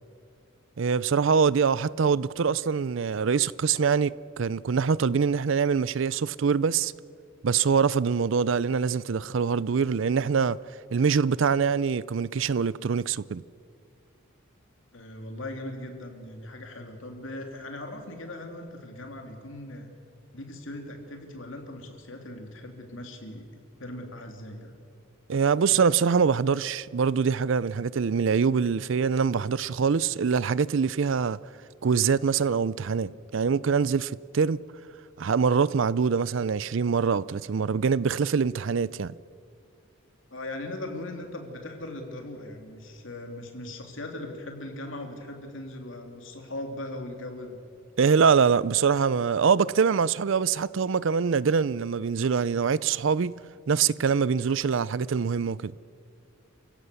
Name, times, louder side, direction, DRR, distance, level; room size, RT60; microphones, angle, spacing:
voice 1, 0.8-6.9 7.4-10.6 10.9-13.4 25.3-31.4 31.8-34.6 35.2-39.1 48.0-53.4 53.7-55.7, right 6 dB, 65° right, 0.5 m, -24 dB
voice 2, 14.9-19.9 20.3-23.5 23.8-24.7 40.3-47.6, left 1 dB, 65° left, 3.0 m, -39 dB
29.0 x 16.0 x 6.9 m
head